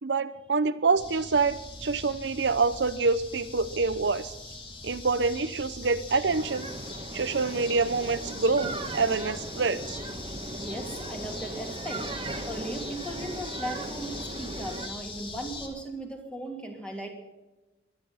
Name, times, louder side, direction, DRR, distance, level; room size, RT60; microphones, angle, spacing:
voice 1, 0.0-4.3 4.8-6.7 7.1-10.0, right 4 dB, 70° right, 13 dB, 0.7 m, -26 dB
sound 1, 1.0-15.7, left 2 dB, 30° left, 2.5 m, -41 dB
sound 2, 6.2-14.9, right 2 dB, 30° right, 1.3 m, -38 dB
voice 2, 10.6-12.1 12.5-17.1, right 1 dB, 5° left, 2 dB, 2.7 m, -37 dB
23.0 x 9.8 x 5.7 m, 1.1 s
head